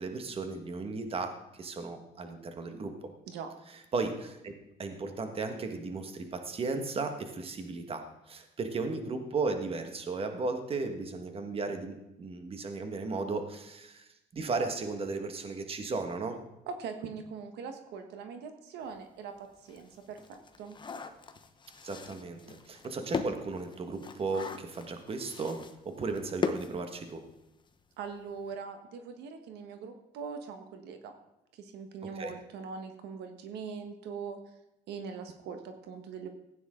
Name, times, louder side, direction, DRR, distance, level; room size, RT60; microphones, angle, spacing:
voice 1, 0.0-1.3 1.6-2.9 3.9-4.5 4.8-16.4 21.8-27.2 32.0-32.3, right 3 dB, 35° right, 6 dB, 1.5 m, -35 dB
voice 2, 16.7-20.8 28.0-31.1 31.5-34.4 34.9-36.3, right 5 dB, 80° right, 6 dB, 1.3 m, -42 dB
sound 1, 18.9-19.0 19.4-27.5 27.8-27.9 28.2-28.4, left 5 dB, 25° left, 0.9 m, -39 dB
15.5 x 9.3 x 3.8 m, 0.89 s
cardioid pair, 110°, 17 cm